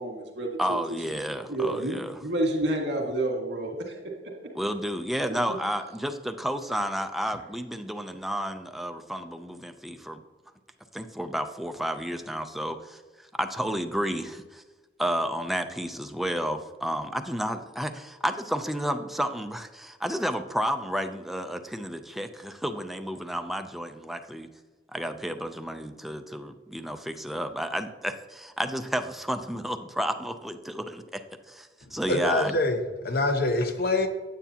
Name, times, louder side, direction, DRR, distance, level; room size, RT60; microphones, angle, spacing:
voice 1, 0.0-0.8 1.5-4.0, right 1 dB, 80° right, 1.9 m, -29 dB
voice 2, 0.6-2.2 4.5-10.2 10.9-14.6 15.0-24.5 24.9-31.2 31.5-32.6, equal, ahead, 0.5 m, -31 dB
voice 3, 32.1-34.1, left 2 dB, 60° left, 0.9 m, -25 dB
9.3 x 8.1 x 2.8 m
head